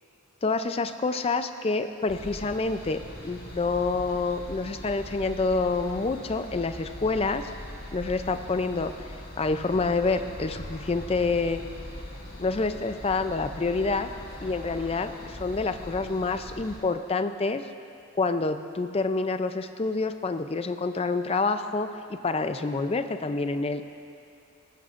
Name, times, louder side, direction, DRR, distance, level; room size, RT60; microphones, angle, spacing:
voice 1, 0.4-7.5 7.9-8.9 9.4-11.6 12.4-14.1 14.4-17.6 18.1-23.8, left 3 dB, 25° left, 9 dB, 0.4 m, -27 dB
sound 1, 2.1-16.8, equal, 45° left, 1.8 m, -41 dB
19.0 x 15.0 x 2.5 m, 2.5 s
head